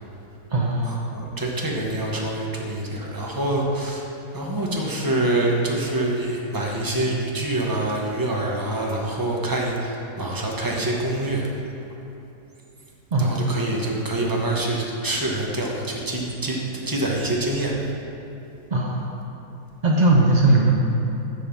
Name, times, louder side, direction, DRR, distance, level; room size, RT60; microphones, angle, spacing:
voice 1, 0.5-1.1 13.1-13.6 18.7-19.1 19.8-20.7, right 2 dB, 75° right, -2 dB, 0.4 m, -19 dB
voice 2, 1.1-4.0 4.3-11.5 13.2-17.8, right 1 dB, 15° right, -2 dB, 0.7 m, -25 dB
9.9 x 3.8 x 7.1 m, 2.9 s
omnidirectional pair, 1.8 m